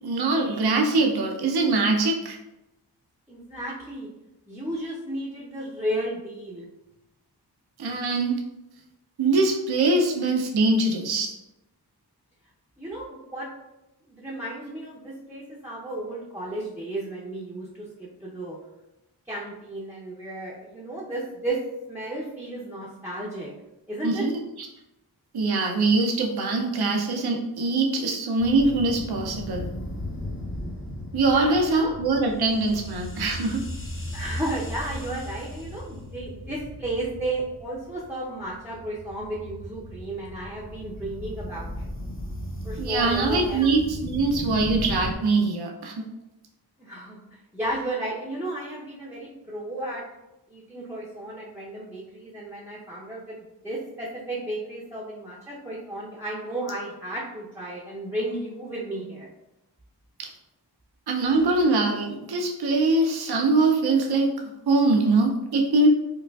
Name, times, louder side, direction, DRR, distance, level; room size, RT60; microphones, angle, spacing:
voice 1, 0.0-2.4 7.8-8.4 9.2-11.3 24.0-24.3 24.6-24.7 25.3-29.7 31.1-33.6 42.8-45.9 60.2-60.3 61.1-64.3 64.7-65.9, right 3 dB, 65° right, 1 dB, 0.6 m, -23 dB
voice 2, 3.3-4.1 4.5-6.7 12.8-13.5 14.1-18.6 19.3-21.6 21.9-23.5 23.9-24.3 31.3-31.9 34.1-41.9 42.6-43.7 46.8-50.0 50.5-59.3, right 1 dB, 5° right, -7 dB, 0.6 m, -33 dB
sound 1, 28.4-45.2, left 1 dB, 30° left, 0.7 m, -36 dB
4.6 x 2.4 x 2.3 m, 0.94 s
wide cardioid pair, 50°, 41 cm